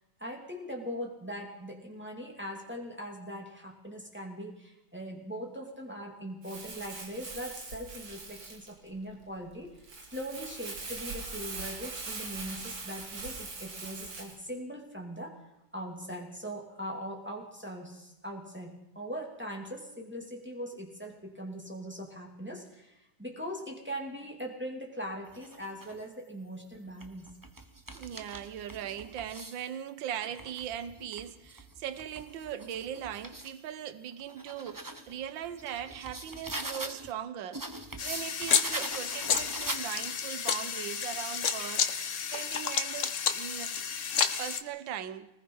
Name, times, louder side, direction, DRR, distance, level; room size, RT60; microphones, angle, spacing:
voice 1, 0.2-9.7 10.1-15.4 15.7-27.3, equal, 5° right, 0 dB, 2.8 m, -41 dB
Crumpling crinkling, 6.4-14.4, right 3 dB, 90° right, 3.7 m, -42 dB
sound 1, 25.3-26.0 26.7-29.7 30.1-33.6 34.0-37.1 37.5-40.3, right 2 dB, 20° right, 0.5 m, -43 dB
voice 2, 27.9-37.7 38.0-41.9 42.3-43.8 44.2-45.3, right 9 dB, 65° right, 13 dB, 1.7 m, -39 dB
sound 2, 38.0-44.6, left 7 dB, 45° left, 1.0 m, -31 dB
24.5 x 19.5 x 5.6 m, 0.91 s
omnidirectional pair, 2.4 m